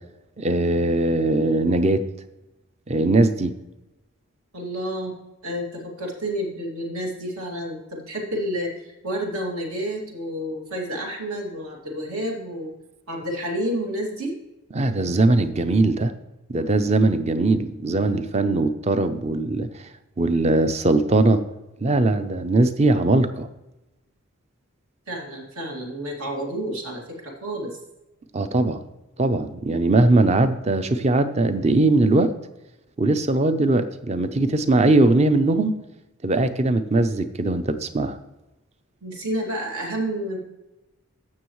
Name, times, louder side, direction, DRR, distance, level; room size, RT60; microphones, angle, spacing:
voice 1, 0.4-2.0 2.9-3.5 14.7-16.1 16.5-19.9 20.2-21.4 21.8-23.5 28.3-28.8 29.2-32.3 33.0-35.8 36.2-38.2, right 2 dB, 30° right, 11 dB, 0.5 m, -20 dB
voice 2, 4.5-5.2 5.4-12.7 13.1-14.3 25.1-27.8 39.0-40.4, equal, 75° right, 0 dB, 2.4 m, -30 dB
15.0 x 6.3 x 3.1 m, 0.99 s
head